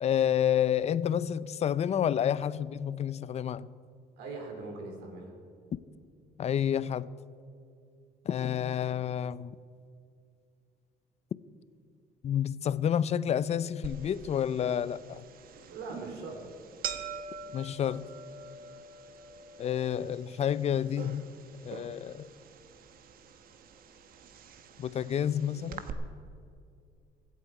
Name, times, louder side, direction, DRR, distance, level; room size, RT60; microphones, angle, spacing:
voice 1, 0.0-3.7 6.4-7.1 8.3-9.6 12.2-15.2 17.5-18.1 19.6-21.2 21.6-22.3 24.8-25.8, left 9 dB, 40° left, 0.5 m, -29 dB
voice 2, 4.2-5.3 15.7-16.4, right 3 dB, 90° right, 3.4 m, -41 dB
sound 1, 13.8-25.9, right 6 dB, 60° right, 1.1 m, -45 dB
24.0 x 8.4 x 4.8 m
cardioid pair, 110°, 17 cm